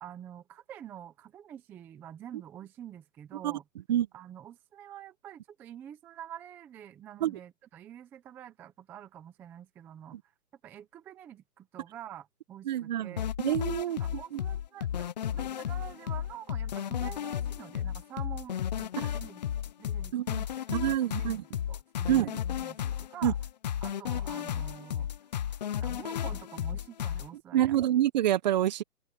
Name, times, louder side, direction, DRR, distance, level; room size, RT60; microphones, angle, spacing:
voice 1, 0.0-3.6 4.1-10.2 10.6-13.3 14.0-15.1 15.3-19.4 19.8-20.1 20.6-23.4 23.8-25.1 25.8-27.8, right 10 dB, 5° right, 0.6 m, -47 dB
voice 2, 12.7-14.0 14.3-14.4 19.0-19.1 20.1-21.4 22.1-22.4 23.2-23.3 27.5-28.8, right 12 dB, 30° right, 0.9 m, -27 dB
sound 1, 13.2-27.3, left 10 dB, 30° left, 0.6 m, -33 dB
open air
hypercardioid pair, 150°, 44 cm